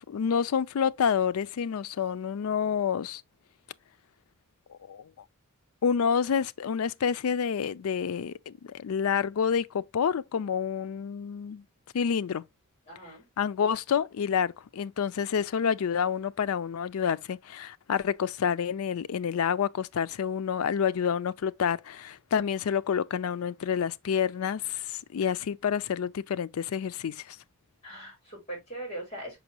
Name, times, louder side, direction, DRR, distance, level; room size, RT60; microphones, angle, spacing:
voice 1, 0.1-3.2 4.7-5.0 5.8-11.6 11.9-12.4 13.4-27.4, left 7 dB, 75° left, 0.4 m, -28 dB
voice 2, 12.9-13.3 27.8-29.4, right 1 dB, 30° left, 4.9 m, -40 dB
6.1 x 5.3 x 2.8 m
head